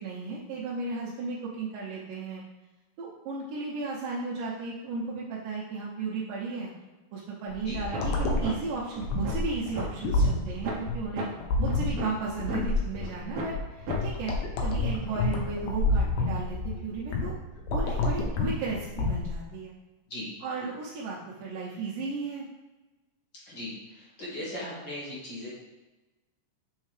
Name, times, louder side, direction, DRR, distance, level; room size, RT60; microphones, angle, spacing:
voice 1, 0.0-2.4 3.0-6.7 7.1-11.3 11.6-14.4 14.6-17.3 17.7-19.7 20.4-22.5, right 4 dB, 85° right, -6 dB, 2.5 m, -35 dB
sound 1, 7.5-19.4, left 2 dB, 70° left, 1.8 m, -28 dB
sound 2, 7.9-8.1 8.4-8.5 8.9-9.9 10.3-10.4 10.6-10.8 11.2-11.3 11.7-12.6 13.0-13.1 13.3-13.5 13.9-14.0, right 1 dB, 65° right, 1.8 m, -34 dB
voice 2, 24.2-25.6, left 1 dB, 50° left, -7 dB, 1.5 m, -37 dB
7.4 x 4.5 x 3.2 m, 1.2 s
omnidirectional pair, 3.8 m